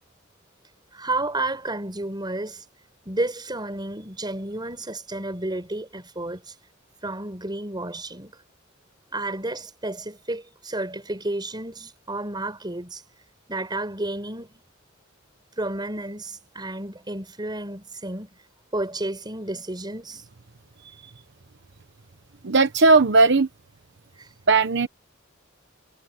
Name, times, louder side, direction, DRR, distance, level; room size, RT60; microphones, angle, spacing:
voice 1, 0.9-2.6 3.1-6.5 7.0-8.4 9.1-13.0 13.5-14.6 15.6-18.3 18.7-20.2 24.2-24.3, right 2 dB, 20° right, 5.3 m, -31 dB
voice 2, 22.4-23.5 24.5-24.9, right 3 dB, 60° right, 1.0 m, -17 dB
head